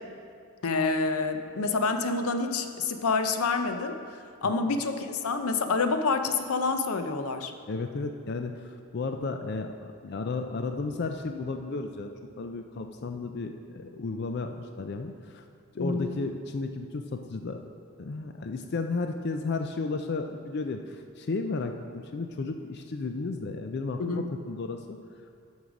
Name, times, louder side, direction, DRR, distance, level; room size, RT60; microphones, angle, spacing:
voice 1, 0.6-7.5 15.8-16.1 24.0-24.3, left 4 dB, 90° left, 7 dB, 0.6 m, -28 dB
voice 2, 7.7-8.6 8.9-9.7 10.0-12.1 12.4-15.4 15.7-17.6 18.0-20.8 21.2-24.8, left 3 dB, 50° left, 6 dB, 0.4 m, -33 dB
12.5 x 5.5 x 5.0 m, 2.3 s
head